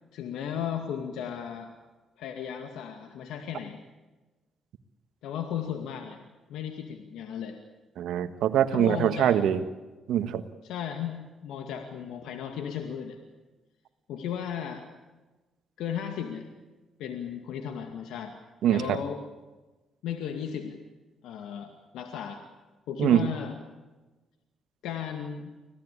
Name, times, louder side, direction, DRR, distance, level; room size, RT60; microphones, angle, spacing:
voice 1, 0.1-1.7 2.2-3.8 5.2-6.2 6.5-7.6 8.7-9.4 10.6-13.2 14.1-14.8 15.8-16.5 17.0-18.3 18.7-19.2 20.0-20.8 21.2-22.4 22.9-23.6 24.8-25.5, left 8 dB, 85° left, 5 dB, 2.2 m, -35 dB
voice 2, 8.0-9.6 10.1-10.4 18.6-19.0 23.0-23.3, right 10 dB, 80° right, 10 dB, 1.6 m, -23 dB
25.5 x 17.5 x 8.5 m, 1.2 s
cardioid pair, 90°, 0 cm